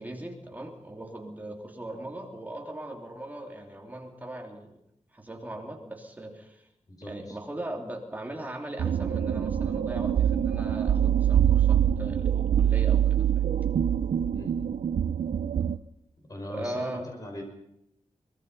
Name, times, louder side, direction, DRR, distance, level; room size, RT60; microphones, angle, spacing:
voice 1, 0.0-4.8 5.1-6.7 7.0-13.5 16.5-17.1, right 1 dB, 15° right, 2 dB, 3.0 m, -39 dB
voice 2, 6.9-7.4 14.3-14.5 16.2-17.4, left 1 dB, 30° left, 3 dB, 5.4 m, -40 dB
sound 1, 8.8-15.8, right 9 dB, 90° right, 0.7 m, -24 dB
23.5 x 20.0 x 5.5 m, 0.81 s
wide cardioid pair, 170°, 12 cm